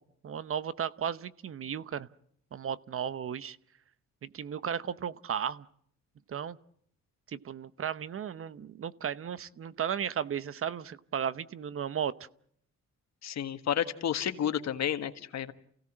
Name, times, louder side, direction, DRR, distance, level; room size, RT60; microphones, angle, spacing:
voice 1, 0.2-2.1 2.5-3.6 4.2-5.6 6.3-6.6 7.3-12.1, right 8 dB, 45° right, 16 dB, 0.9 m, -35 dB
voice 2, 13.2-15.5, left 9 dB, 60° left, 9 dB, 1.6 m, -31 dB
29.0 x 17.0 x 7.5 m, 0.69 s
cardioid pair, 90°, 30 cm